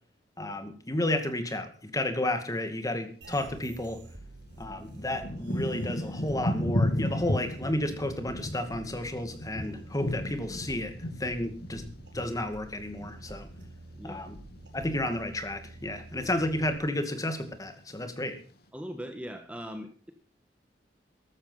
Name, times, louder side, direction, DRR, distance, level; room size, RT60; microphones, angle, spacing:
voice 1, 0.4-4.0 4.6-11.9 12.1-13.5 14.0-14.4 14.7-18.4, left 1 dB, 20° left, 8 dB, 2.2 m, -32 dB
sound 1, 3.2-16.7, right 1 dB, 80° right, 4.5 m, -48 dB
Thunder / Rain, 3.7-3.8 4.5-14.0 14.3-15.2 15.7-16.1 16.4-17.2 17.8-17.9, left 1 dB, 65° left, 2.5 m, -34 dB
voice 2, 18.7-20.1, equal, 5° right, 6 dB, 1.5 m, -40 dB
14.5 x 13.0 x 5.7 m, 0.42 s
head